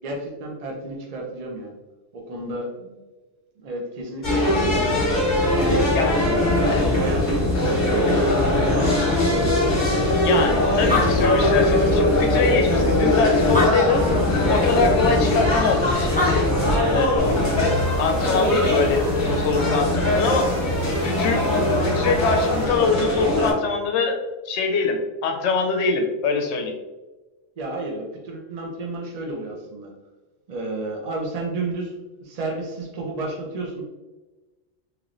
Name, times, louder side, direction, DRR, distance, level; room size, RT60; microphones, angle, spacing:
voice 1, 0.0-1.7 2.1-3.0 3.6-5.1 5.5-9.3 27.6-29.9 30.5-31.9 32.2-33.8, right 2 dB, 45° right, -1 dB, 0.5 m, -31 dB
sound 1, 4.2-23.5, left 1 dB, 45° left, 1.0 m, -21 dB
voice 2, 10.2-14.0 14.5-16.5 16.9-17.2 17.5-20.5 21.0-26.7, left 4 dB, 70° left, 4 dB, 0.8 m, -24 dB
Animal, 10.5-10.6 10.7-12.2 12.8-12.9 13.4-14.4 15.9-16.0 16.2-17.1, left 2 dB, 10° left, 0.5 m, -26 dB
sound 2, 17.2-22.7, right 1 dB, 65° right, 1.6 m, -29 dB
3.1 x 3.0 x 2.5 m, 1.1 s
omnidirectional pair, 1.2 m